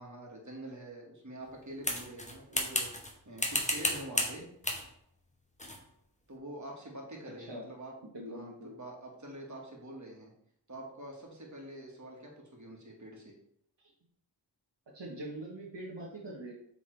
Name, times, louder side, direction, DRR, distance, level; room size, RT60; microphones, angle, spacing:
voice 1, 0.0-2.9 3.3-4.5 6.3-7.9 8.3-10.3 10.7-13.3, right 1 dB, 40° right, -1 dB, 1.8 m, -46 dB
sound 1, 1.8-3.1 3.4-4.4 4.6-4.9 5.6-5.8, left 1 dB, 15° left, 1.1 m, -32 dB
voice 2, 8.1-8.8 14.9-16.5, right 1 dB, 70° right, -4 dB, 1.4 m, -43 dB
7.7 x 3.8 x 3.4 m, 0.69 s
wide cardioid pair, 45°, 44 cm